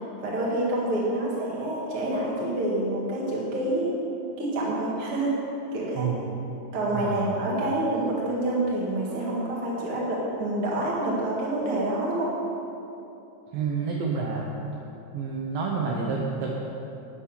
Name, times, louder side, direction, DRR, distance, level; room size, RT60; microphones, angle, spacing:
voice 1, 0.2-3.9 4.4-5.4 5.7-6.1 6.7-12.3, right 1 dB, 50° right, -5 dB, 1.7 m, -27 dB
voice 2, 13.5-14.5 15.1-16.5, right 5 dB, 75° right, -2 dB, 2.2 m, -28 dB
11.5 x 6.3 x 8.4 m, 2.9 s
omnidirectional pair, 5.3 m